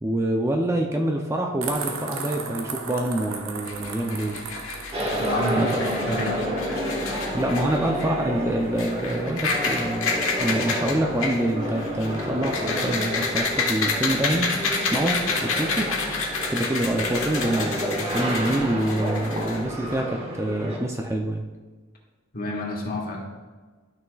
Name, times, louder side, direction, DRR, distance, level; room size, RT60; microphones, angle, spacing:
voice 1, 0.0-4.5 5.5-5.9 7.3-10.1 10.4-14.5 14.9-16.1 16.5-21.4, right 1 dB, 15° right, 2 dB, 0.5 m, -26 dB
sound 1, 1.6-6.0, right 4 dB, 80° right, 0.9 m, -35 dB
sound 2, 3.7-19.9, left 4 dB, 75° left, 1.3 m, -30 dB
sound 3, 4.9-20.8, equal, 30° right, 1.4 m, -30 dB
voice 2, 5.1-6.5 22.3-23.2, left 1 dB, 45° left, -1 dB, 1.5 m, -29 dB
12.5 x 5.8 x 2.3 m, 1.4 s
head